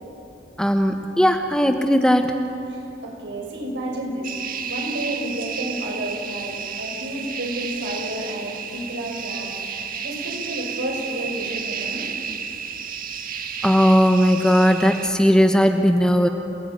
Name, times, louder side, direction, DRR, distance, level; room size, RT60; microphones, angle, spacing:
voice 1, 0.6-2.4 13.6-16.3, equal, 5° left, 5 dB, 1.1 m, -17 dB
voice 2, 3.0-4.3 4.6-12.1, right 1 dB, 65° right, 0 dB, 6.8 m, -31 dB
sound 1, 4.2-15.1, right 7 dB, 50° right, 1.7 m, -32 dB
28.0 x 18.0 x 9.5 m, 2.9 s
head